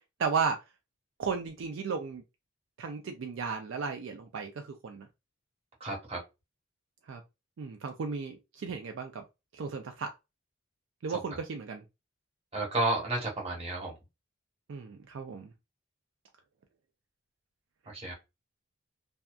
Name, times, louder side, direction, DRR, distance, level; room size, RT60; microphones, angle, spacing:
voice 1, 0.2-0.6 1.2-2.2 2.8-5.1 7.1-7.2 7.6-9.2 9.5-10.1 11.0-11.8 14.7-15.5, right 5 dB, 65° right, 0.4 m, -34 dB
voice 2, 5.8-6.2 12.5-13.9 17.9-18.1, right 2 dB, 30° right, 1.1 m, -31 dB
2.6 x 2.2 x 2.3 m
head